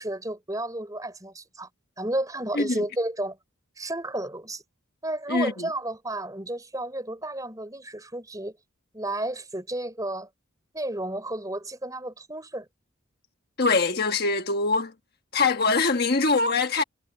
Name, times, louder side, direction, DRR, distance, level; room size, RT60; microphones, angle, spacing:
voice 1, 0.0-1.7 2.0-3.4 3.8-4.6 5.0-8.6 8.9-10.3 10.7-12.7, right 1 dB, 15° right, 4.2 m, -32 dB
voice 2, 5.3-5.7 13.6-14.9 15.3-16.8, left 3 dB, 45° left, 1.4 m, -23 dB
head